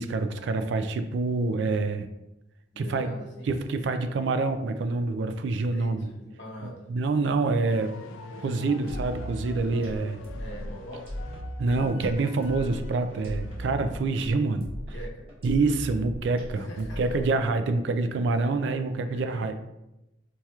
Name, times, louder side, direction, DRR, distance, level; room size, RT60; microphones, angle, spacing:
voice 1, 0.0-2.1 2.8-3.1 3.5-6.1 6.9-8.0 8.4-10.2 11.6-14.7 15.4-19.5, right 3 dB, 65° right, 8 dB, 0.3 m, -26 dB
voice 2, 2.7-3.6 5.7-6.9 8.4-8.6 10.4-11.1 14.6-15.3 16.5-17.2 18.4-18.5 19.0-19.6, equal, 70° left, -2 dB, 0.9 m, -43 dB
sound 1, 7.7-14.1, left 3 dB, 90° left, 0.4 m, -45 dB
sound 2, 8.9-17.5, equal, 30° right, 1.0 m, -37 dB
4.6 x 2.9 x 2.3 m, 0.92 s
head